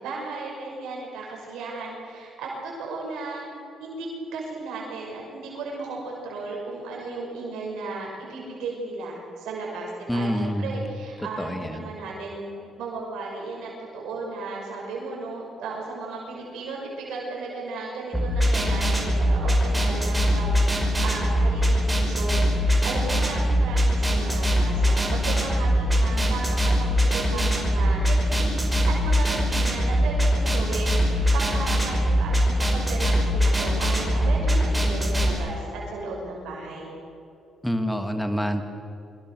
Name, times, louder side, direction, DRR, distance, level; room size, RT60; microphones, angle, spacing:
voice 1, 0.0-3.5 3.8-12.5 12.8-20.6 21.0-36.9, right 3 dB, 90° right, -3 dB, 6.0 m, -35 dB
voice 2, 10.1-10.8 11.4-11.8 37.6-38.6, equal, 5° left, 6 dB, 2.5 m, -26 dB
sound 1, 18.1-35.3, equal, 10° right, 5.6 m, -22 dB
24.5 x 24.5 x 6.5 m, 2.5 s
cardioid pair, 90°, 0 cm